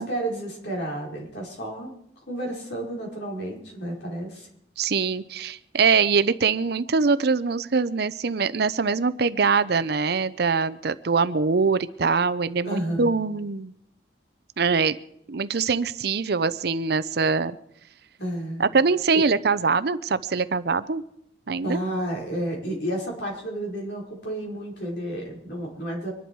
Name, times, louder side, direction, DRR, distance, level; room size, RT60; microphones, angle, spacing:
voice 1, 0.0-1.9 2.3-4.5 12.6-13.1 18.2-18.7 19.1-19.2 21.6-26.1, right 1 dB, 65° left, -1 dB, 5.0 m, -31 dB
voice 2, 4.8-13.7 14.6-15.0 15.3-17.6 18.6-21.0 21.5-21.8, right 5 dB, 60° right, 14 dB, 0.6 m, -23 dB
24.5 x 11.0 x 4.7 m, 0.74 s
head